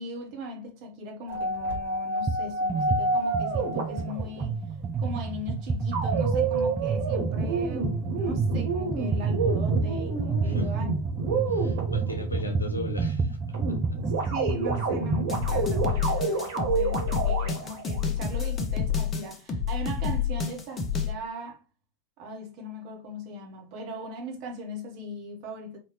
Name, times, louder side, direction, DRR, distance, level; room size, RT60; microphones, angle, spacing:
voice 1, 0.0-4.7 5.0-10.9 14.0-21.6 22.2-25.8, equal, 45° right, 1.2 m, -39 dB
sound 1, 1.3-4.4 5.9-12.4 13.5-18.0, right 3 dB, 60° right, 1.6 m, -29 dB
sound 2, 2.3-2.4 2.7-16.0, right 5 dB, 20° right, 0.3 m, -29 dB
voice 2, 11.5-13.4 13.7-13.8, left 1 dB, 80° left, 0.8 m, -36 dB
sound 3, 15.3-21.1, left 7 dB, 25° left, 0.7 m, -28 dB
4.3 x 2.7 x 3.1 m
figure-of-eight pair, 90°, 0 cm